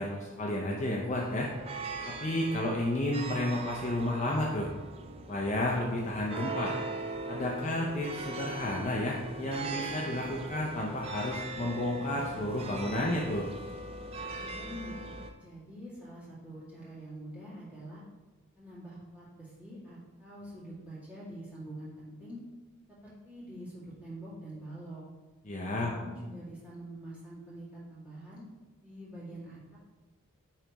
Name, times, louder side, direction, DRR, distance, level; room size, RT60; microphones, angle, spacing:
voice 1, 0.0-1.5 2.0-4.7 5.3-6.7 7.3-13.5 25.5-25.9, left 1 dB, 30° left, -2 dB, 0.5 m, -31 dB
sound 1, 1.2-15.3, right 3 dB, 25° right, 0.3 m, -40 dB
voice 2, 14.4-14.9 15.4-18.0 18.6-22.4 22.9-25.0 25.7-28.4 28.8-29.8, right 1 dB, 5° right, -10 dB, 2.0 m, -45 dB
9.9 x 3.4 x 3.0 m, 1.2 s
head